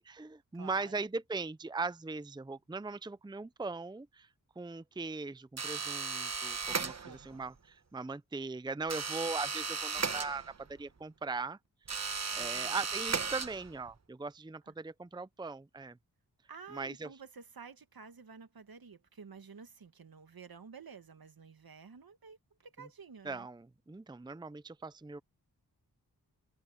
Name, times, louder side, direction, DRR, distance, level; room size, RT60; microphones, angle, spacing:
voice 1, 0.0-4.3 4.6-11.6 12.3-16.0 16.7-17.1 23.2-25.2, right 3 dB, 10° right, 0.7 m, -39 dB
voice 2, 0.5-1.1 6.7-7.4 12.3-13.0 14.6-14.7 16.5-23.5, right 5 dB, 65° right, 2.1 m, -51 dB
sound 1, 5.6-7.4 8.9-10.8 11.9-13.9, right 5 dB, 45° right, 1.3 m, -36 dB
cardioid pair, 50°, 38 cm